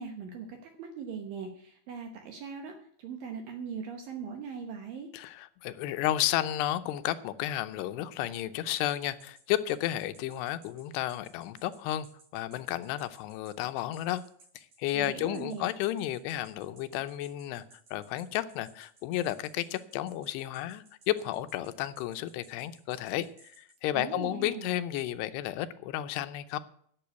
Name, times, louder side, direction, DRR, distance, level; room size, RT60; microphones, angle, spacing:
voice 1, 0.0-5.1 14.9-15.7 23.9-24.8, right 6 dB, 70° right, 2.4 m, -40 dB
voice 2, 5.1-12.1 12.3-14.2 14.6-26.6, left 13 dB, 80° left, 2.7 m, -32 dB
sound 1, 8.7-23.8, right 2 dB, 50° right, 5.4 m, -58 dB
11.5 x 7.1 x 8.2 m
omnidirectional pair, 4.9 m